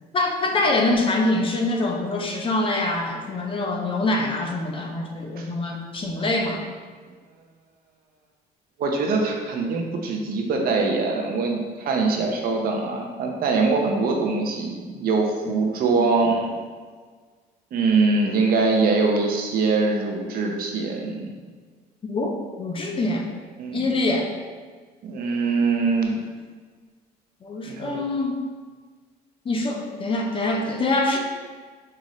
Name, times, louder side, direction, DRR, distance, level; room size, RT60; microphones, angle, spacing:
voice 1, 0.1-6.6 15.4-15.6 15.9-16.1 22.0-22.3 22.6-23.3 23.7-24.3 27.4-28.4 29.5-31.2, left 2 dB, 30° left, 1 dB, 0.6 m, -24 dB
voice 2, 8.8-16.6 17.7-21.3 23.6-24.0 25.0-26.2 27.6-28.0, right 3 dB, 60° right, 1 dB, 0.7 m, -23 dB
5.6 x 2.5 x 3.0 m, 1.5 s
cardioid pair, 110°, 17 cm